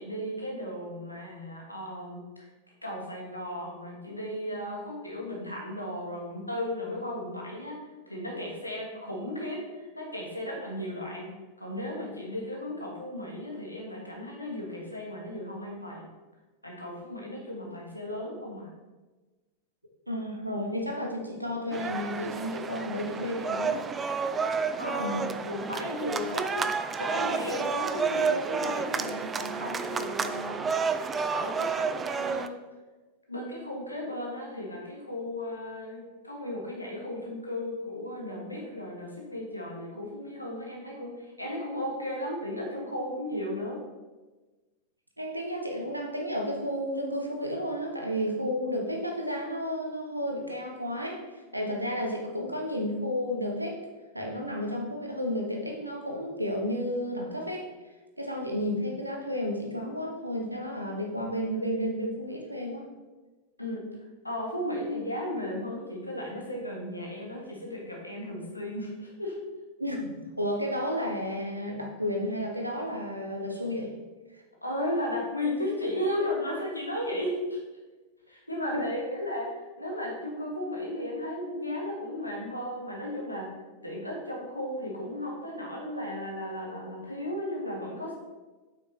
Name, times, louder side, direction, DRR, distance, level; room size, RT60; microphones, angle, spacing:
voice 1, 0.0-2.2 2.8-7.8 8.1-16.1 16.6-18.7 24.8-30.6 31.3-32.6 33.3-43.8 63.6-63.9 64.2-69.4 74.6-77.6 78.3-83.5 83.8-88.1, left 1 dB, 85° left, -2 dB, 1.6 m, -35 dB
voice 2, 20.1-23.9 25.0-25.3 45.2-53.8 54.1-57.7 58.2-62.9 69.8-73.9 74.3-74.4 78.7-78.8, equal, 85° right, 1 dB, 1.1 m, -32 dB
sound 1, 21.7-32.5, right 5 dB, 20° right, 0.4 m, -30 dB
7.6 x 6.0 x 3.3 m, 1.2 s
figure-of-eight pair, 90°, 0 cm